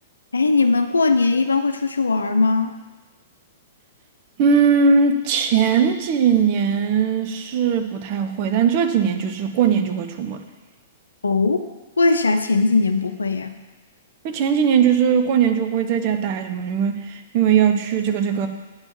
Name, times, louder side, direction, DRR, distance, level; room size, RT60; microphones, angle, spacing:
voice 1, 0.3-2.8 11.2-11.7 12.0-13.6, left 3 dB, 80° left, 8 dB, 0.7 m, -19 dB
voice 2, 4.4-10.4 14.2-18.5, right 6 dB, 45° right, 7 dB, 0.8 m, -19 dB
8.7 x 4.4 x 7.4 m, 1.2 s
figure-of-eight pair, 110°, 0 cm